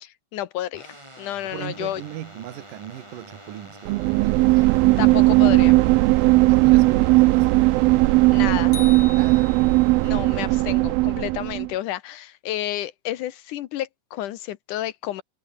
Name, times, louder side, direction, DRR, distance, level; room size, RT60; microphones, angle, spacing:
voice 1, 0.0-0.9 1.2-2.0 5.0-5.8 8.3-8.7 10.0-15.2, left 13 dB, 70° left, 2.2 m, -30 dB
sound 1, 0.7-8.4, right 1 dB, 5° right, 7.7 m, -45 dB
voice 2, 1.4-4.7 6.2-7.8 9.1-9.6, right 13 dB, 70° right, 2.9 m, -38 dB
sound 2, 3.9-11.7, right 22 dB, 85° right, 2.4 m, -17 dB
sound 3, 8.7-10.1, left 4 dB, 50° left, 6.6 m, -38 dB
omnidirectional pair, 4.2 m